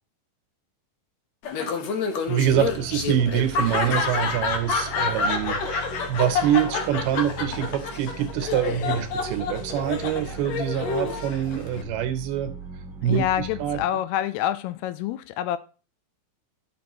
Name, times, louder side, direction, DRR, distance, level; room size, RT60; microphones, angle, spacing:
Laughter, 1.4-11.8, left 5 dB, 65° left, 1.9 m, -28 dB
voice 1, 2.3-12.5 13.0-13.8, right 10 dB, 80° right, 2.9 m, -25 dB
sound 1, 2.4-13.9, right 5 dB, 55° right, 0.9 m, -40 dB
voice 2, 13.1-15.6, left 12 dB, 85° left, 2.7 m, -27 dB
11.5 x 6.5 x 3.1 m
omnidirectional pair, 4.5 m